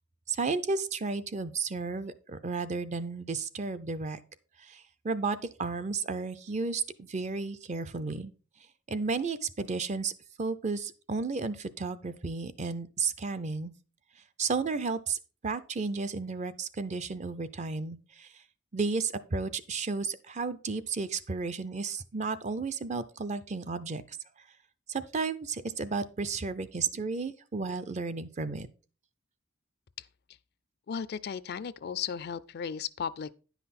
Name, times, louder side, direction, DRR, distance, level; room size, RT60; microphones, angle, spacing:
voice 1, 0.3-4.2 4.6-8.3 8.9-10.1 10.4-13.7 14.4-18.3 18.7-24.2 24.9-28.7, right 4 dB, 35° right, 0.5 m, -33 dB
voice 2, 30.9-33.3, left 7 dB, 50° left, 0.4 m, -35 dB
10.0 x 5.7 x 4.2 m
head